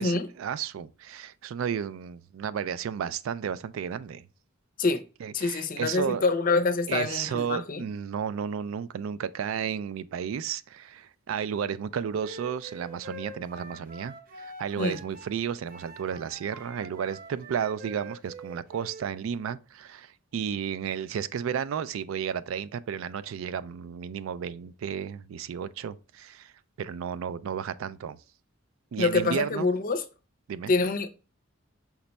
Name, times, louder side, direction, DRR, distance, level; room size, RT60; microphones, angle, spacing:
voice 1, 0.0-4.2 5.2-6.2 6.9-26.5 26.8-28.2 28.9-29.7 30.5-30.7, right 7 dB, 75° right, 0.3 m, -33 dB
voice 2, 5.3-7.8 14.8-15.0 29.0-30.0 30.7-31.1, left 3 dB, 45° left, 0.5 m, -26 dB
Wind instrument woodwind instrument, 12.2-15.4 15.7-19.1, right 2 dB, 45° right, 0.7 m, -45 dB
5.9 x 2.2 x 4.0 m
head